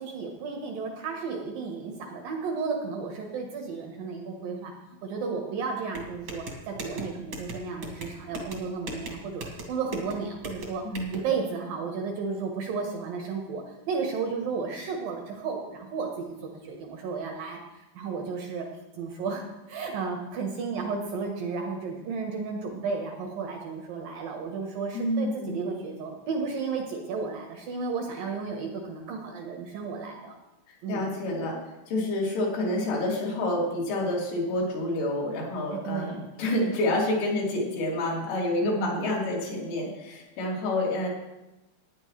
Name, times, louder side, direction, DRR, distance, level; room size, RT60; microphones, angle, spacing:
voice 1, 0.0-4.7 5.0-10.8 11.1-17.6 17.9-18.7 19.0-19.4 19.7-30.3 30.8-31.1 35.7-36.2 38.6-39.0, right 5 dB, 70° right, 1 dB, 2.3 m, -33 dB
sound 1, 5.9-11.1, right 1 dB, 50° right, 1.5 m, -39 dB
voice 2, 24.9-25.6 30.7-31.6 31.9-41.1, left 1 dB, 80° left, -4 dB, 5.2 m, -28 dB
18.0 x 9.8 x 3.2 m, 0.99 s
omnidirectional pair, 5.5 m